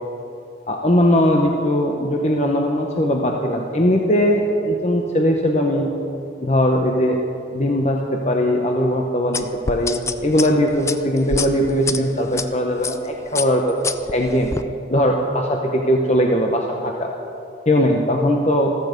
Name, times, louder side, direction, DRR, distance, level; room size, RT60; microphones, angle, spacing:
voice 1, 0.7-5.9 6.4-7.2 7.5-14.5 14.9-17.1 17.7-18.8, equal, 35° left, 1 dB, 0.9 m, -19 dB
sound 1, 9.3-12.4 12.8-13.1 13.3-14.6, left 4 dB, 15° left, 0.3 m, -27 dB
14.5 x 14.5 x 5.2 m, 2.6 s
head